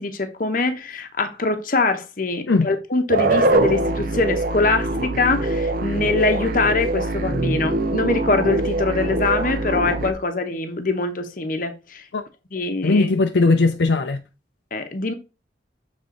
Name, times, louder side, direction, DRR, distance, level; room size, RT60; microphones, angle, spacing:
voice 1, 0.0-12.0 12.5-13.1 14.7-15.1, left 3 dB, 50° left, 0.9 m, -23 dB
sound 1, 3.1-10.1, right 2 dB, 50° right, 0.6 m, -23 dB
voice 2, 12.8-14.2, left 3 dB, 75° left, 0.5 m, -18 dB
6.8 x 3.6 x 3.8 m
head